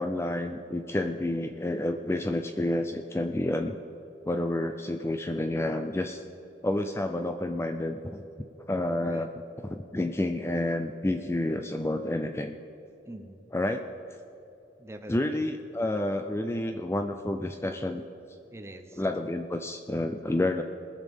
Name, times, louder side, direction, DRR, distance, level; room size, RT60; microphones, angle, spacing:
voice 1, 0.0-3.8 4.3-6.2 6.6-8.2 8.7-9.3 9.7-12.6 13.5-13.9 15.1-18.0 19.0-20.6, left 1 dB, 15° left, 7 dB, 0.4 m, -29 dB
voice 2, 13.0-13.5 14.8-15.5 18.5-19.0, right 1 dB, 15° right, 7 dB, 0.7 m, -45 dB
20.5 x 7.4 x 5.3 m, 3.0 s
head